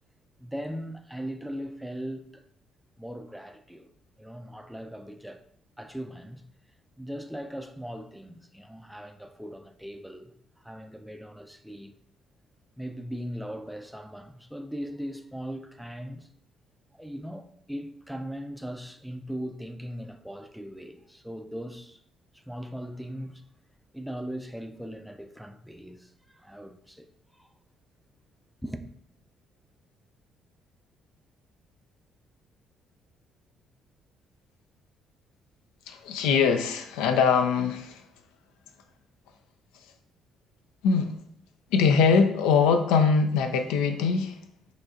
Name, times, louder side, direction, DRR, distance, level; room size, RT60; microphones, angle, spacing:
voice 1, 0.4-2.4 3.0-3.9 4.2-5.4 5.8-6.4 7.0-11.9 12.8-16.3 16.9-22.0 22.3-23.4 23.9-27.1 27.3-27.5 28.6-28.9, equal, ahead, 0.4 m, -39 dB
voice 2, 35.9-38.0 40.8-41.2 41.7-44.4, left 5 dB, 70° left, 0.4 m, -22 dB
4.8 x 3.1 x 2.5 m
hypercardioid pair, 45°, 0 cm